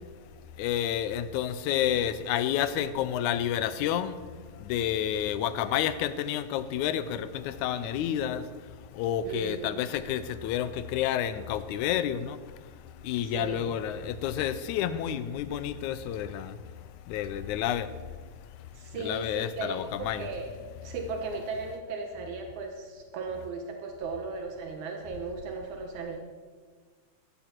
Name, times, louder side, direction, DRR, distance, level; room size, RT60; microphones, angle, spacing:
voice 1, 0.6-4.2 4.7-8.4 9.0-12.4 13.0-16.6 17.1-17.9 19.0-20.3, left 10 dB, 85° left, 2.1 m, -29 dB
voice 2, 9.3-9.7 13.2-13.7 18.7-20.5 20.8-26.2, right 4 dB, 80° right, 2.5 m, -36 dB
15.5 x 12.5 x 4.5 m
omnidirectional pair, 3.4 m